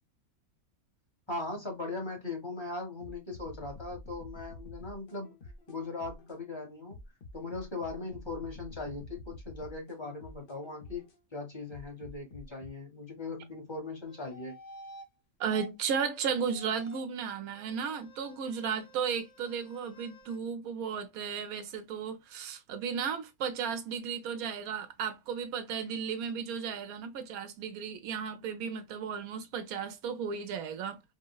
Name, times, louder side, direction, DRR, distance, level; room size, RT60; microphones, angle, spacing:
voice 1, 1.3-5.3 5.7-7.0 7.3-14.6, left 3 dB, 20° left, 0.9 m, -39 dB
sound 1, 3.0-6.4 6.9-11.2 11.7-12.7, left 2 dB, 50° left, 0.8 m, -48 dB
sound 2, 14.1-15.1 15.5-15.7 16.1-17.1 17.5-20.4, equal, 80° left, 0.4 m, -52 dB
voice 2, 15.4-31.0, right 7 dB, 85° right, 1.1 m, -34 dB
3.8 x 2.0 x 2.2 m
omnidirectional pair, 1.5 m